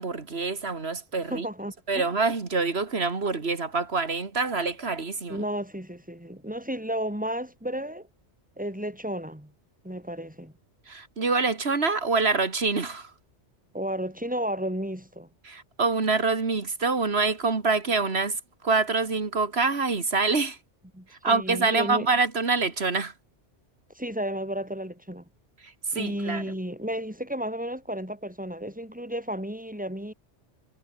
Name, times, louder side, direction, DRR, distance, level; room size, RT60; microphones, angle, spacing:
voice 1, 0.0-1.5 1.9-5.4 10.9-13.1 15.4-20.6 21.1-23.1 25.6-26.4, right 4 dB, 60° right, 2.4 m, -26 dB
voice 2, 1.3-2.1 5.3-8.1 8.6-9.5 9.8-10.5 13.7-15.3 20.9-22.1 23.9-25.2 25.9-30.1, equal, 5° right, 4.8 m, -33 dB
omnidirectional pair, 1.2 m